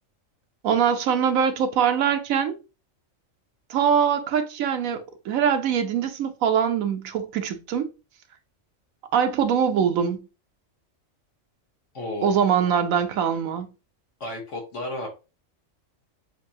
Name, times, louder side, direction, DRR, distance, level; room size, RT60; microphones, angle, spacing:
voice 1, 0.6-2.6 3.7-7.9 9.1-10.2 12.2-13.7, right 7 dB, 90° right, 1.1 m, -23 dB
voice 2, 11.9-12.5 14.2-15.1, left 1 dB, 65° left, 1.4 m, -33 dB
6.8 x 2.6 x 2.7 m
omnidirectional pair, 1.4 m